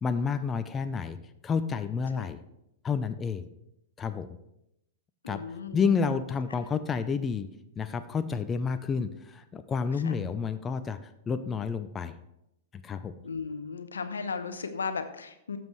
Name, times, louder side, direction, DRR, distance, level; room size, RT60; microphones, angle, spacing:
voice 1, 0.0-1.2 1.4-2.4 2.8-3.5 4.0-4.4 5.3-5.4 5.7-7.5 7.8-11.0 11.3-12.1 12.8-13.1, left 5 dB, 20° left, 10 dB, 0.5 m, -29 dB
voice 2, 5.2-5.8 10.0-10.2 13.2-15.6, left 5 dB, 80° left, 9 dB, 0.8 m, -35 dB
12.5 x 7.4 x 3.2 m, 0.83 s
hypercardioid pair, 105°, 0 cm